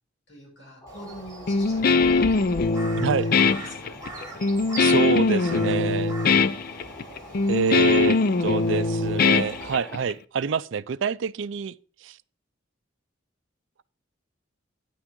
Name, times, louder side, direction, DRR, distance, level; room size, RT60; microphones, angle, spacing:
voice 1, 0.3-2.3 3.0-4.0, equal, 65° left, 6.2 m, -45 dB
sound 1, 0.8-10.0, equal, 15° left, 3.4 m, -45 dB
Crow, 0.9-9.7, right 2 dB, 15° right, 2.8 m, -42 dB
Guitar, 1.5-10.1, left 4 dB, 45° left, 0.4 m, -22 dB
voice 2, 3.0-3.3 4.8-6.1 7.5-11.7 12.0-12.2, right 6 dB, 65° right, 0.4 m, -27 dB
10.0 x 8.7 x 3.7 m
head